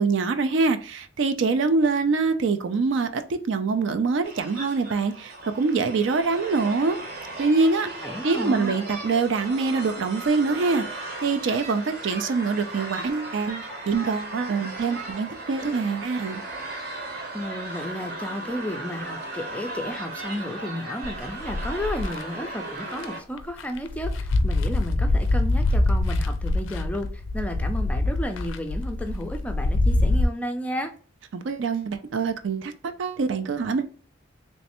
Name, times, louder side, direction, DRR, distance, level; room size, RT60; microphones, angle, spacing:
voice 1, 0.0-7.0 7.4-16.4 31.3-33.8, right 4 dB, 70° right, 8 dB, 0.4 m, -25 dB
sound 1, 4.2-23.2, right 2 dB, 50° right, 0.9 m, -36 dB
voice 2, 8.0-8.7 17.3-30.9, equal, 5° left, 5 dB, 0.4 m, -33 dB
sound 2, 21.0-22.2 22.9-23.0 23.4-30.2, left 2 dB, 80° left, 0.4 m, -24 dB
3.1 x 3.1 x 2.9 m, 0.39 s
head